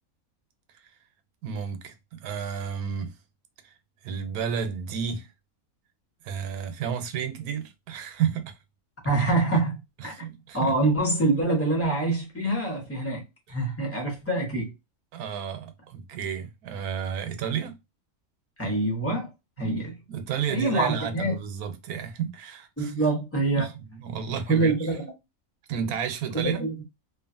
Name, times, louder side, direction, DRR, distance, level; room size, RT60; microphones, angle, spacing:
voice 1, 1.4-3.2 3.6-3.7 4.0-5.3 6.2-8.5 10.0-10.9 13.5-13.6 15.1-17.8 19.6-19.8 20.1-23.0 23.5-25.0 25.7-26.6, right 7 dB, 85° right, 1.1 m, -32 dB
voice 2, 9.0-9.7 10.0-10.1 10.5-13.2 13.5-14.7 18.6-19.3 19.6-19.9 20.5-21.3 22.8-23.7 24.5-25.0 26.3-26.8, right 2 dB, 10° left, 0.9 m, -25 dB
2.7 x 2.5 x 2.5 m
omnidirectional pair, 1.5 m